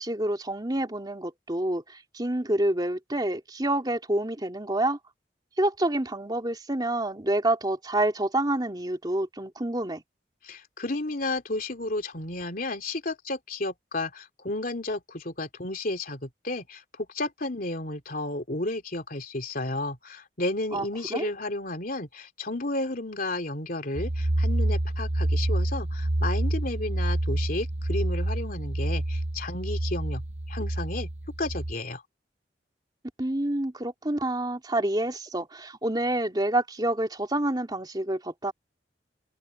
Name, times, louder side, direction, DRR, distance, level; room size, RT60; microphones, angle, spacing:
voice 1, 0.0-5.0 5.6-10.0 20.7-20.8 21.1-21.3 33.2-38.5, right 1 dB, 25° right, 3.0 m, -28 dB
voice 2, 10.4-30.2 30.5-31.1 31.4-32.0, left 2 dB, 50° left, 3.2 m, -32 dB
sound 1, 24.0-31.7, right 1 dB, 40° right, 0.9 m, -28 dB
open air
head